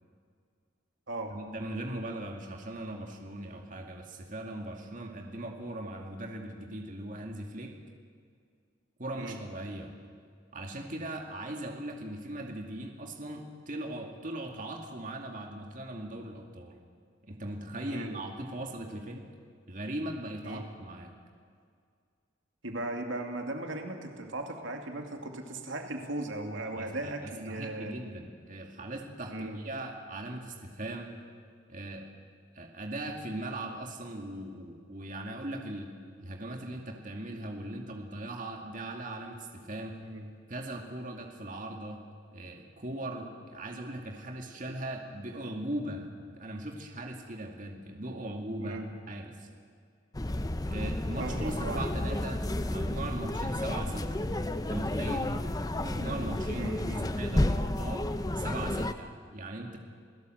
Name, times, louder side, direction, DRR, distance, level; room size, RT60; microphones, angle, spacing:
voice 1, 1.3-7.7 9.0-9.9 10.5-16.8 17.2-19.3 19.7-21.1 26.7-31.2 31.7-32.1 32.5-35.9 36.2-40.0 40.5-42.0 42.3-48.8 49.1-49.5 50.7-54.2 54.7-55.4 55.8-56.7 57.0-58.1 58.4-59.8, right 1 dB, 40° right, 2 dB, 2.4 m, -39 dB
voice 2, 22.6-27.9 29.3-29.6 40.0-40.3 48.6-48.9 51.2-51.9 56.5-57.1, right 2 dB, 75° right, 3 dB, 2.5 m, -37 dB
sound 1, 50.1-58.9, left 1 dB, 20° left, 0.7 m, -31 dB
29.0 x 17.0 x 7.9 m, 2.1 s
head